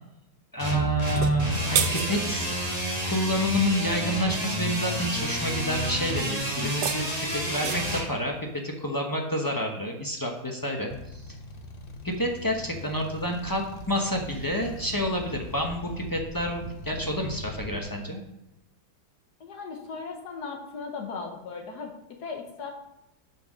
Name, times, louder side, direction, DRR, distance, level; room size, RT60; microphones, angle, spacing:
voice 1, 0.5-2.5 3.0-11.3 12.0-18.2, equal, 20° left, 1 dB, 0.6 m, -29 dB
sound 1, 0.6-8.1, right 1 dB, 20° right, 2.0 m, -29 dB
sound 2, 1.1-2.6 6.5-8.1, right 8 dB, 75° right, 1.4 m, -31 dB
sound 3, 10.9-17.8, left 2 dB, 85° left, 0.3 m, -41 dB
voice 2, 19.4-22.7, left 4 dB, 60° left, 2 dB, 1.5 m, -37 dB
7.9 x 5.7 x 6.1 m, 0.90 s
omnidirectional pair, 2.1 m